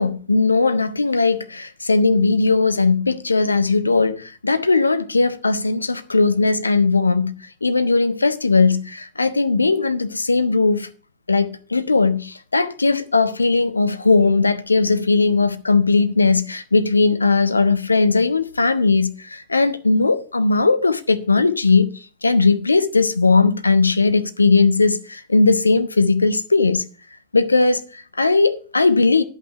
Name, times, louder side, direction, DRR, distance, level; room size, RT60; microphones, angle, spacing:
voice 1, 0.0-7.3 7.6-10.9 11.3-26.8 27.3-29.2, left 3 dB, 80° left, 0.7 m, -18 dB
10.5 x 5.7 x 5.6 m
figure-of-eight pair, 90°, 0 cm